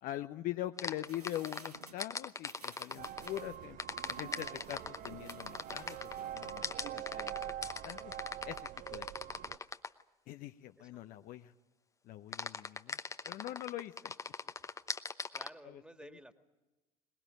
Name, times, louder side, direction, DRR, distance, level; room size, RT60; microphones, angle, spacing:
voice 1, 0.0-3.8 4.1-8.1 8.4-8.6 8.9-9.1 10.3-11.5 12.0-13.0 13.2-14.1 15.6-15.8, left 13 dB, 45° left, 9 dB, 0.8 m, -43 dB
sound 1, 0.8-3.4 3.8-10.0 12.3-15.5, left 4 dB, 15° left, 0.9 m, -40 dB
sound 2, 1.1-6.7 7.1-7.2, right 4 dB, 85° right, 1.2 m, -57 dB
sound 3, 3.0-9.6, right 11 dB, 40° right, 0.8 m, -45 dB
voice 2, 15.3-16.3, right 1 dB, 5° right, 7 dB, 2.1 m, -54 dB
22.0 x 21.0 x 9.0 m, 1.1 s
figure-of-eight pair, 65°, 19 cm